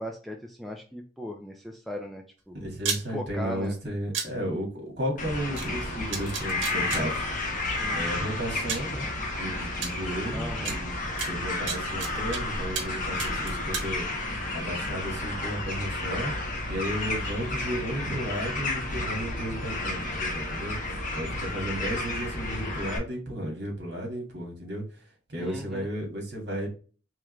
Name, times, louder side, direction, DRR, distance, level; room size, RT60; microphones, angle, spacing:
voice 1, 0.0-2.6 3.1-3.8 7.8-8.1 10.3-10.8 25.4-25.9, equal, ahead, 1 dB, 0.3 m, -38 dB
voice 2, 2.6-7.3 7.9-9.1 9.4-14.1 14.5-16.3 16.7-20.8 21.1-25.0 25.3-26.7, equal, 55° right, 1 dB, 1.7 m, -34 dB
sound 1, 2.8-3.0 4.1-4.3 5.6-5.7 6.1-7.0 8.1-8.2 8.7-8.9 9.8-9.9 10.6-10.7 11.2-12.4 12.7-12.9 13.2-13.9, right 5 dB, 75° right, 1.1 m, -31 dB
sound 2, 5.2-23.0, left 2 dB, 40° left, 1.0 m, -32 dB
3.6 x 3.1 x 3.1 m, 0.37 s
head